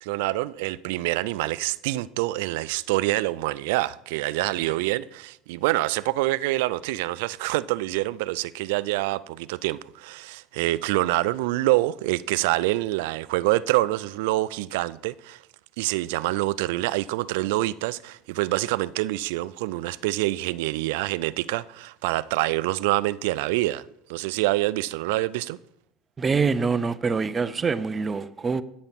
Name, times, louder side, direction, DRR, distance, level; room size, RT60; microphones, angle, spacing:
voice 1, 0.0-15.4 15.8-23.8 24.1-25.6, right 18 dB, 85° right, 0.3 m, -26 dB
voice 2, 26.2-28.6, right 5 dB, 20° right, 0.5 m, -25 dB
9.4 x 7.0 x 5.7 m
cardioid pair, 140°, 0 cm